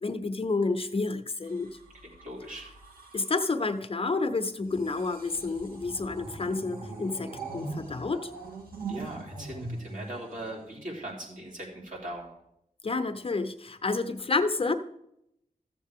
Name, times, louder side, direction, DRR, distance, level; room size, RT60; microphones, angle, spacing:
voice 1, 0.0-1.7 3.1-8.3 12.8-14.7, left 3 dB, 40° left, 8 dB, 0.7 m, -29 dB
sound 1, 1.4-3.5 4.6-11.0 11.9-12.2, right 3 dB, 85° right, 1.9 m, -42 dB
voice 2, 2.0-2.7 8.9-12.3, right 1 dB, 60° right, -3 dB, 3.3 m, -40 dB
13.5 x 7.4 x 3.6 m, 0.78 s
wide cardioid pair, 110°, 15 cm